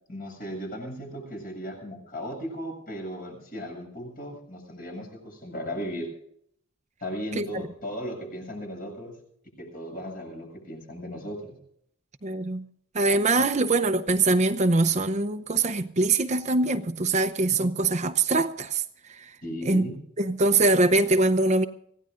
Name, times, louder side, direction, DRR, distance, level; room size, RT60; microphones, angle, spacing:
voice 1, 0.1-6.1 7.0-9.2 9.6-11.6 17.0-17.1 17.5-17.6 19.4-20.0, equal, 45° left, 7.5 m, -36 dB
voice 2, 12.2-12.6 12.9-18.8 19.6-19.8 20.2-21.7, right 3 dB, 35° right, 0.7 m, -23 dB
25.5 x 17.0 x 2.6 m
head